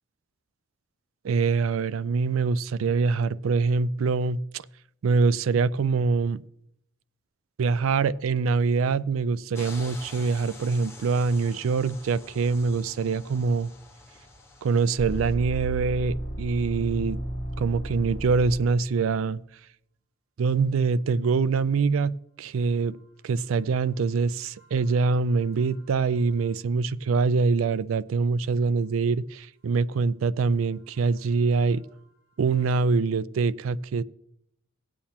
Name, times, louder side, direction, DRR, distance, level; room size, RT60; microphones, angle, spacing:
voice 1, 1.2-4.6 5.0-6.4 7.6-13.7 14.6-17.2 17.6-19.4 20.4-23.0 23.2-31.8 32.4-34.0, right 4 dB, 90° right, 18 dB, 0.4 m, -24 dB
sound 1, 9.5-15.3, left 3 dB, 15° left, 1.1 m, -47 dB
sound 2, 15.0-19.0 24.6-26.0 26.3-26.5 32.5-32.6, right 1 dB, 45° left, 1.7 m, -34 dB
17.0 x 8.6 x 2.9 m, 0.74 s
head